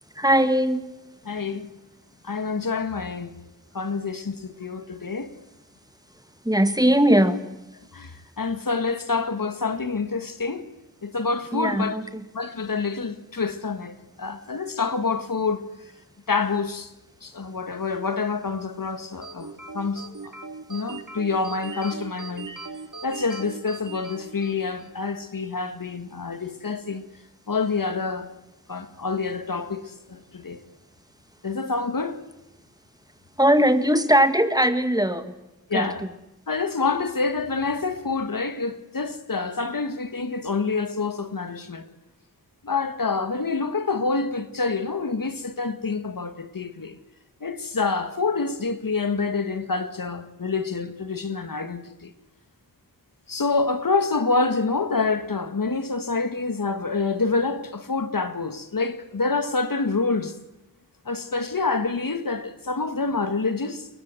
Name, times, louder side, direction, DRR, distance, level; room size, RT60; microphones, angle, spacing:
voice 1, 0.2-0.9 6.4-7.5 11.5-12.2 33.4-35.3 35.7-36.1, equal, 10° right, 2.0 m, -20 dB
voice 2, 1.3-1.7 2.2-3.3 3.7-5.3 7.9-10.7 11.0-12.0 12.3-15.6 16.3-16.9 17.2-19.5 19.7-20.3 20.7-22.5 23.0-27.0 27.5-28.3 28.7-30.6 31.4-32.2 35.7-36.0 36.5-41.9 42.6-47.0 47.4-52.1 53.3-60.3 61.1-63.9, left 4 dB, 65° left, 1.9 m, -27 dB
sound 1, 19.2-25.0, right 3 dB, 60° right, 3.0 m, -39 dB
29.0 x 22.0 x 7.8 m
wide cardioid pair, 60°, 36 cm